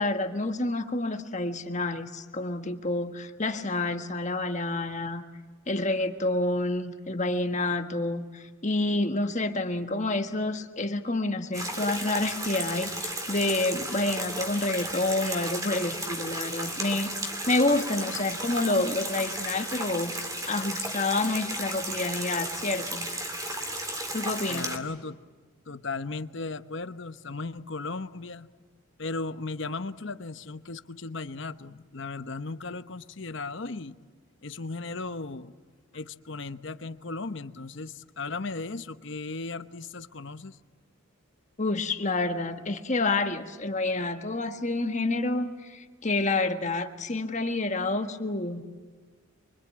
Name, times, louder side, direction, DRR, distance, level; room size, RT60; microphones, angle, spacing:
voice 1, 0.0-5.2 5.7-17.1 17.5-20.1 20.5-23.1 23.3-23.5 24.1-24.7 41.6-48.6, left 2 dB, 35° left, 5 dB, 1.6 m, -28 dB
sound 1, 11.5-24.8, right 1 dB, 15° right, 2.6 m, -34 dB
voice 2, 24.5-25.2 25.7-28.5 29.0-34.0 34.4-35.5 35.9-40.6, left 3 dB, 55° left, 11 dB, 1.0 m, -36 dB
25.0 x 25.0 x 8.7 m, 1.4 s
head